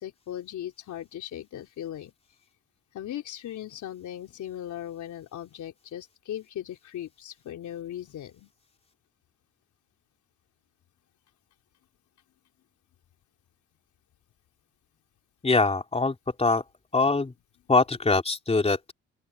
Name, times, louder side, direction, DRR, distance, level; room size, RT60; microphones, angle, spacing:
voice 1, 0.0-2.1 2.9-8.5, left 11 dB, 75° left, 3.7 m, -38 dB
voice 2, 15.4-16.6 16.9-17.3 17.7-18.9, left 3 dB, 20° left, 3.7 m, -23 dB
open air
cardioid pair, 90°, 30 cm